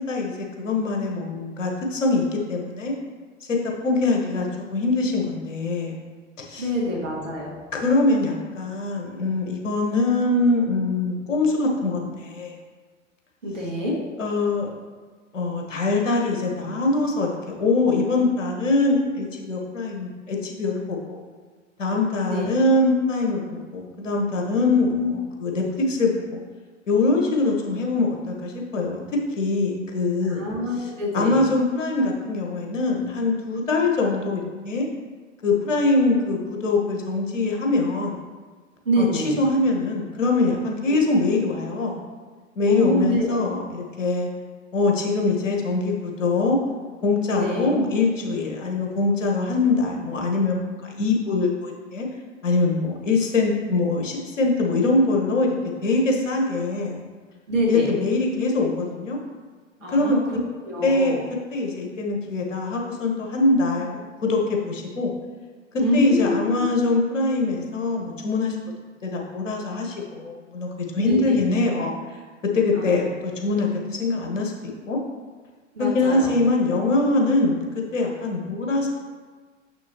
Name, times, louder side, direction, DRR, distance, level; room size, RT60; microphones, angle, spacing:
voice 1, 0.1-2.9 3.5-6.0 6.4-6.6 7.7-12.5 14.2-14.7 15.3-21.2 21.8-26.4 26.9-30.4 30.8-34.9 35.4-38.2 39.0-42.0 42.6-44.3 44.7-46.6 47.0-52.1 52.4-55.5 55.8-57.0 57.7-59.2 59.9-60.2 60.8-61.2 61.5-65.1 65.9-68.6 69.0-71.9 72.4-74.5 74.9-75.0 75.8-77.6 77.9-78.9, left 3 dB, 75° left, 0 dB, 1.4 m, -23 dB
voice 2, 6.6-7.6 13.4-14.0 22.2-22.5 24.6-25.1 30.2-31.4 38.9-39.4 40.9-41.0 42.7-43.4 47.3-47.7 57.5-57.9 59.8-61.2 65.8-66.6 71.0-71.4 72.7-73.0 75.8-76.4, left 1 dB, 75° right, -4 dB, 1.9 m, -26 dB
6.6 x 6.2 x 2.9 m, 1.4 s
figure-of-eight pair, 90°, 38 cm